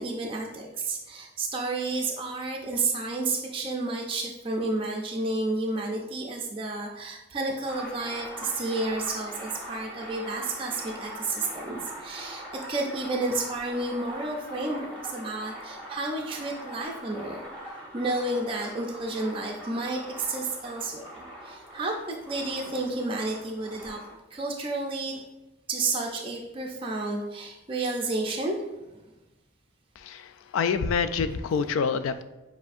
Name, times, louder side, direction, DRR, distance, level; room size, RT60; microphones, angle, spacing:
voice 1, 0.0-12.4 12.7-17.5 17.9-24.0 24.3-25.2 25.7-28.8, right 2 dB, 25° right, 0 dB, 0.4 m, -31 dB
sound 1, 7.6-24.1, right 1 dB, 5° left, 0.9 m, -42 dB
voice 2, 30.0-32.2, left 5 dB, 75° left, 12 dB, 0.3 m, -27 dB
7.0 x 2.6 x 2.5 m, 1.0 s
head